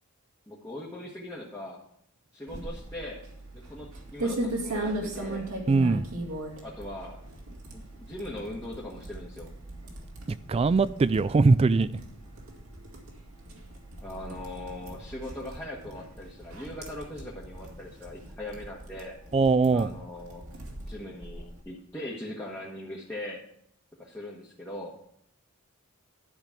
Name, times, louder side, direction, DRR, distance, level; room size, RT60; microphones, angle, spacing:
voice 1, 0.5-1.8 2.3-3.3 3.5-5.5 6.6-7.2 7.7-9.5 14.0-19.2 19.7-20.4 20.9-23.4 24.0-24.9, left 1 dB, 15° left, 1.4 m, -40 dB
sound 1, 2.5-21.6, right 1 dB, 85° right, 2.2 m, -39 dB
voice 2, 5.7-6.0 10.5-11.9 19.3-19.9, right 3 dB, 30° right, 0.3 m, -21 dB
11.5 x 5.2 x 5.9 m
head